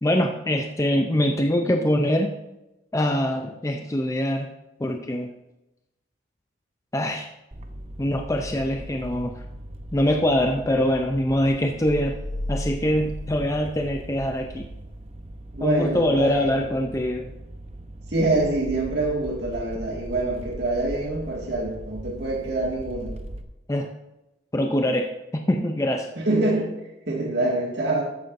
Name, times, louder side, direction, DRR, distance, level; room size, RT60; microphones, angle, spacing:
voice 1, 0.0-2.3 2.9-4.5 4.8-5.3 6.9-7.3 8.0-9.4 9.9-12.2 12.5-14.7 15.6-17.4 23.7-23.9 24.5-26.1, left 1 dB, 15° left, 4 dB, 0.4 m, -23 dB
sound 1, 7.5-23.4, right 1 dB, 35° right, 0.7 m, -40 dB
sound 2, 11.8-14.8, left 1 dB, 75° left, 1.8 m, -35 dB
voice 2, 15.5-16.4 18.1-23.2 26.2-26.7 27.1-28.0, right 2 dB, 60° right, -2 dB, 1.9 m, -25 dB
13.5 x 9.2 x 2.6 m, 0.95 s
head